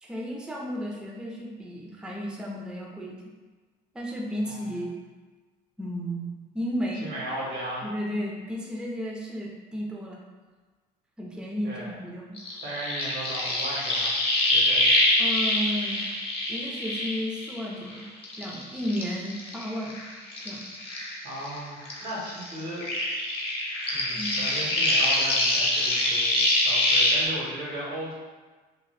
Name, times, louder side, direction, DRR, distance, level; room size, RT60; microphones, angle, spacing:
voice 1, 0.0-3.2 3.9-4.9 5.8-7.1 7.8-10.2 11.2-12.6 15.2-16.0 16.5-18.1 18.4-20.0 20.4-20.6 24.1-24.4, equal, 5° right, -2 dB, 0.4 m, -33 dB
voice 2, 4.4-4.8 7.0-7.9 11.6-11.9 12.6-14.1 14.4-14.9 21.2-22.8 23.9-28.1, right 1 dB, 85° right, -6 dB, 1.4 m, -36 dB
sound 1, 12.4-17.9 18.2-21.6 21.8-27.2, left 1 dB, 30° left, 0.7 m, -25 dB
2.7 x 2.4 x 3.1 m, 1.3 s
cardioid pair, 110°, 17 cm